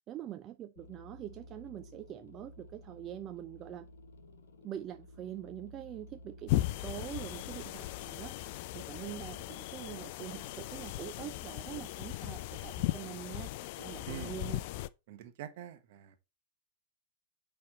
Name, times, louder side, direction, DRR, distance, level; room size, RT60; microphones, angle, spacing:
voice 1, 0.1-3.9 4.6-14.6, right 11 dB, 35° right, 0.4 m, -44 dB
sound 1, 0.8-7.9, left 1 dB, 75° left, 1.2 m, -54 dB
sound 2, 6.5-14.9, left 16 dB, 55° left, 0.4 m, -37 dB
voice 2, 15.1-16.2, right 11 dB, 60° right, 1.1 m, -45 dB
8.7 x 3.4 x 4.2 m
hypercardioid pair, 105°, 0 cm